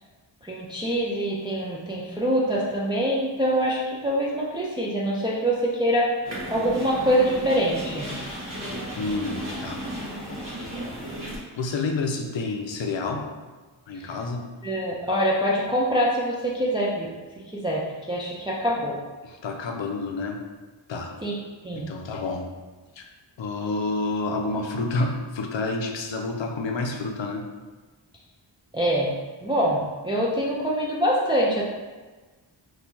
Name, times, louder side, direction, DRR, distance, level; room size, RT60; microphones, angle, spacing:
voice 1, 0.4-6.2 6.5-8.1 13.9-14.1 14.6-19.0 21.2-21.3 21.6-21.9 28.7-29.1 29.4-31.7, equal, 10° right, -4 dB, 0.4 m, -25 dB
sound 1, 6.2-11.4, right 1 dB, 60° right, 1.4 m, -34 dB
voice 2, 9.0-9.9 11.2-13.3 13.9-14.5 19.2-20.4 20.9-21.2 21.7-22.5 23.0-23.1 23.4-27.5, left 3 dB, 70° left, 3 dB, 0.6 m, -29 dB
4.3 x 2.4 x 2.7 m, 1.3 s
wide cardioid pair, 50°, 47 cm